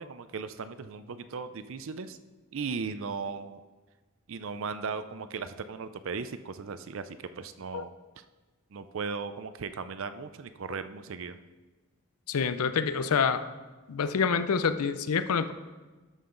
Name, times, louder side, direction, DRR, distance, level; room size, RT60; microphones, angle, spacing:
voice 1, 0.0-2.2 2.5-3.6 4.3-7.9 8.7-11.4, right 5 dB, 60° right, 11 dB, 0.5 m, -37 dB
voice 2, 12.3-13.4 13.9-15.5, left 6 dB, 80° left, 11 dB, 0.5 m, -27 dB
12.5 x 5.6 x 3.8 m, 1.3 s
head